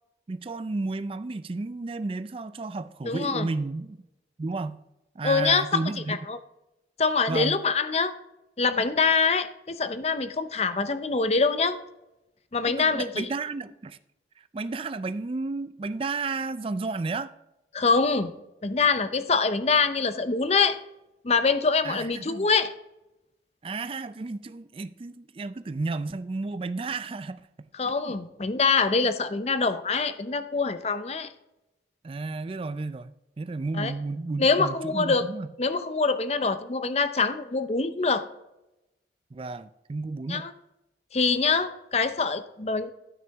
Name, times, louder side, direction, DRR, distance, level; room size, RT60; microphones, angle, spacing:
voice 1, 0.3-4.0 4.4-4.8 5.2-6.2 7.3-7.6 12.6-14.0 14.5-17.3 21.8-22.5 23.6-27.7 28.0-28.1 32.0-35.5 39.3-40.5, right 3 dB, 30° right, 0.4 m, -32 dB
voice 2, 3.0-3.5 5.2-5.8 6.1-6.4 7.0-8.1 8.6-11.8 12.5-13.3 17.7-18.3 18.6-20.8 21.2-22.7 27.8-31.3 33.7-33.9 34.4-35.2 35.6-38.3 40.3-40.5 41.1-42.9, left 4 dB, 35° left, 0.6 m, -24 dB
12.0 x 6.2 x 3.5 m
head